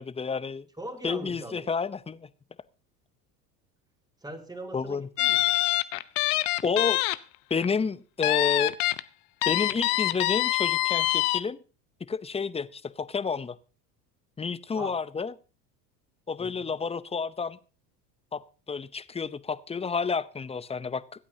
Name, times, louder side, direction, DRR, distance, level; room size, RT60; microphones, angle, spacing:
voice 1, 0.0-0.7 1.0-2.3 4.7-5.1 6.6-7.0 7.5-8.7 9.5-11.6 12.1-13.5 14.4-15.3 16.3-17.6 18.3-18.4 18.7-21.0, left 5 dB, 15° left, 0.7 m, -30 dB
voice 2, 0.8-1.7 4.2-5.7 14.7-15.0 16.4-16.7, right 1 dB, 10° right, 2.8 m, -41 dB
sound 1, 5.2-7.2 7.5-7.6 8.2-9.0 9.4-11.4, left 18 dB, 70° left, 0.9 m, -25 dB
25.5 x 8.5 x 2.8 m
hypercardioid pair, 80°, 46 cm